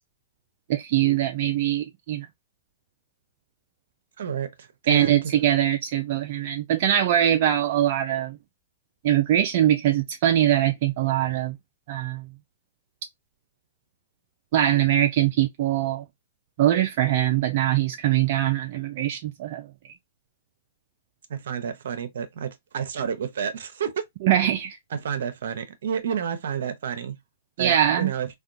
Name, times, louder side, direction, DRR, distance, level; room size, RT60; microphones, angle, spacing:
voice 1, 0.7-2.3 4.9-8.4 9.0-11.6 11.9-12.3 14.5-16.0 16.6-19.7 24.2-24.8 27.6-28.1, right 11 dB, 50° right, 0.3 m, -22 dB
voice 2, 4.2-5.3 21.3-24.0 24.9-27.2 27.6-28.3, right 7 dB, 70° right, 0.7 m, -30 dB
3.4 x 2.2 x 2.5 m
hypercardioid pair, 130°, 0 cm